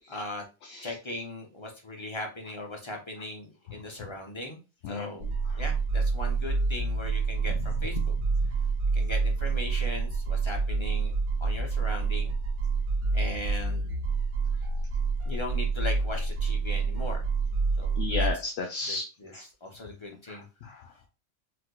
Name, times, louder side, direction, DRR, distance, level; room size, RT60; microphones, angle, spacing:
voice 1, 0.1-0.4 0.8-4.6 4.9-5.3 5.5-8.0 8.9-11.1 11.4-12.3 13.1-13.9 15.3-17.2 17.5-18.3 18.9-19.0 19.3-20.5, left 2 dB, 50° left, 1 dB, 0.3 m, -38 dB
voice 2, 0.6-1.0 3.8-4.1 4.8-5.7 7.8-7.9 8.4-8.5 18.0-19.0 20.1-21.0, left 4 dB, 70° left, 2 dB, 0.8 m, -36 dB
sound 1, 5.2-18.3, right 4 dB, 90° right, 1.0 m, -28 dB
4.1 x 2.4 x 2.2 m, 0.31 s
omnidirectional pair, 1.2 m